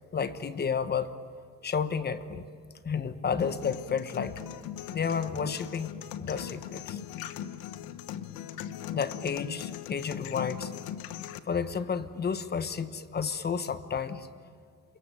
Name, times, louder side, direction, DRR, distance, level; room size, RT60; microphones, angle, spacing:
voice 1, 0.1-1.1 1.6-2.5 2.8-4.4 4.9-5.9 6.2-7.0 8.9-10.7 11.4-14.3, left 6 dB, 30° left, 11 dB, 1.1 m, -31 dB
sound 1, 3.4-11.4, left 10 dB, 85° left, 1.2 m, -39 dB
28.0 x 22.5 x 9.0 m, 2.1 s
cardioid pair, 135°, 34 cm